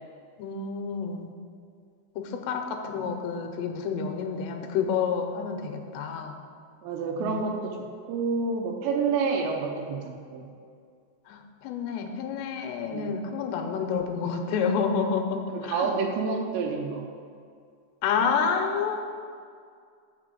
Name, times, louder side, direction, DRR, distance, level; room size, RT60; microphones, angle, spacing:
voice 1, 0.4-1.3 2.2-6.3 7.2-7.4 11.3-15.9 18.0-19.0, left 6 dB, 85° left, 4 dB, 2.8 m, -29 dB
voice 2, 6.8-10.5 12.9-13.1 15.5-17.1, right 4 dB, 90° right, 1 dB, 2.9 m, -29 dB
7.4 x 5.8 x 6.8 m, 2.2 s
omnidirectional pair, 5.0 m